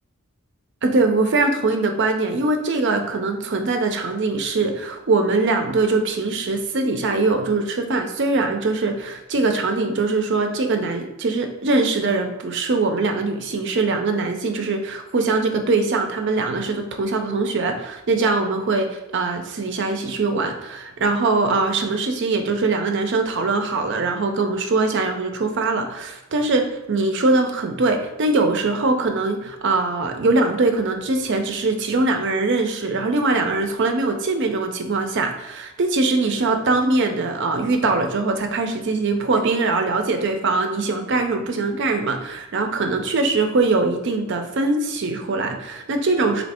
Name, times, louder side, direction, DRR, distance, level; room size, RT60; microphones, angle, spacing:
voice 1, 0.8-46.4, right 3 dB, 55° right, 5 dB, 0.5 m, -22 dB
3.2 x 2.8 x 4.2 m, 0.96 s
head